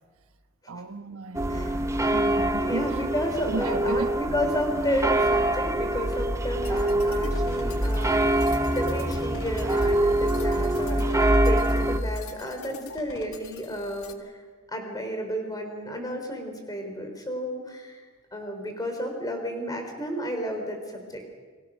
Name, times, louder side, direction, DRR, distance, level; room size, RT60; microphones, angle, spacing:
voice 1, 0.7-4.1, right 3 dB, 85° right, 1.3 m, -35 dB
sound 1, 1.3-12.0, right 1 dB, 15° right, 0.9 m, -24 dB
voice 2, 1.5-2.1 2.6-8.3 8.6-14.4 14.7-21.4, equal, 20° left, 4.0 m, -32 dB
sound 2, 6.6-14.1, left 4 dB, 80° left, 1.7 m, -44 dB
29.5 x 21.0 x 6.4 m
head